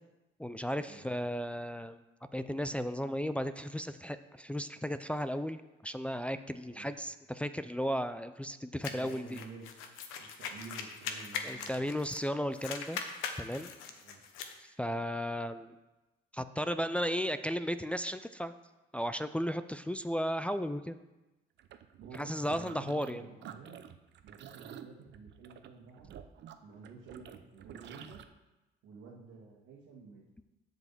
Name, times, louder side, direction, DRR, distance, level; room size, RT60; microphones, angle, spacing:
voice 1, 0.4-2.0 2.3-9.4 11.4-13.0 13.4-13.7 14.6-15.8 16.3-18.5 18.9-21.0 22.2-23.2, equal, 5° left, 10 dB, 0.4 m, -35 dB
sound 1, 8.8-12.3 12.5-14.5, left 6 dB, 85° left, 1.0 m, -41 dB
voice 2, 8.9-9.7 10.2-12.0 14.0-14.2 22.0-23.8 24.2-26.2 26.6-28.2 28.8-30.2, right 4 dB, 80° right, -5 dB, 1.8 m, -50 dB
sound 2, 21.6-23.1 23.4-28.2, right 10 dB, 60° right, 0.7 m, -50 dB
7.8 x 5.0 x 7.4 m, 1.0 s
supercardioid pair, 75°, 20 cm